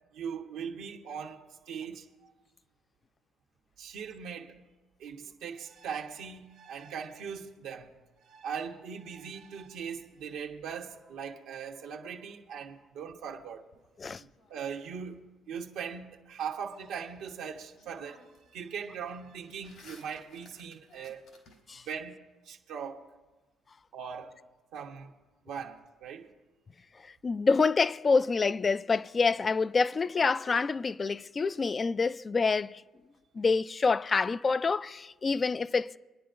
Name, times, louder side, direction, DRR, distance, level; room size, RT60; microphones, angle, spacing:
voice 1, 0.1-2.1 3.8-4.6 5.0-8.0 8.2-13.7 14.2-18.2 18.5-21.2 21.8-23.0 23.9-24.3 24.7-25.1 25.4-26.3, right 7 dB, 85° right, 1.0 m, -40 dB
sound 1, 13.7-15.0 17.2-17.3 17.7-18.5 18.8-22.0, left 2 dB, 80° left, 3.9 m, -57 dB
voice 2, 27.2-32.8 33.4-36.0, left 4 dB, 35° left, 0.3 m, -27 dB
25.5 x 10.0 x 2.5 m
supercardioid pair, 75°, 0 cm